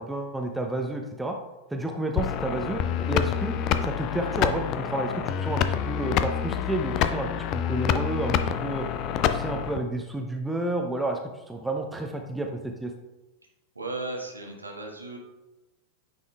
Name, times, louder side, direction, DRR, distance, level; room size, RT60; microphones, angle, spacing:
voice 1, 0.0-1.4 1.7-3.5 3.8-8.9 9.3-12.9, right 2 dB, 5° right, 3 dB, 0.6 m, -31 dB
sound 1, 2.2-9.8, left 9 dB, 40° left, 0.4 m, -27 dB
voice 2, 13.7-15.2, right 2 dB, 80° right, 0 dB, 1.2 m, -35 dB
9.4 x 5.4 x 2.3 m, 1.0 s
figure-of-eight pair, 90°, 0 cm